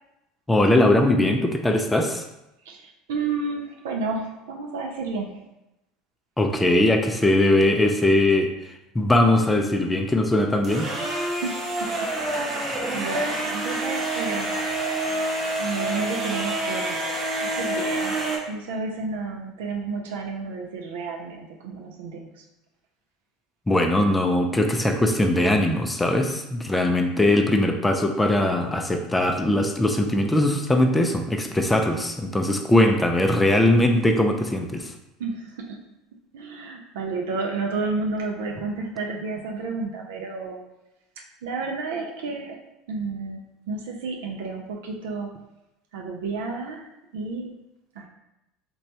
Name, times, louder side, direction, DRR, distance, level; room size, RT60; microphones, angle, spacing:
voice 1, 0.5-2.2 6.4-8.5 8.9-10.9 23.7-34.9, left 1 dB, 10° left, 4 dB, 0.3 m, -20 dB
voice 2, 2.6-5.5 11.4-14.5 15.6-17.0 17.4-18.2 18.5-22.4 35.2-35.8 36.3-40.6 41.4-42.6 42.9-45.4 45.9-47.5 47.9-48.1, right 4 dB, 85° right, 1 dB, 0.3 m, -31 dB
sound 1, 10.6-18.4, right 2 dB, 30° right, 0.8 m, -27 dB
3.0 x 2.2 x 2.7 m, 0.90 s
supercardioid pair, 95°, 0 cm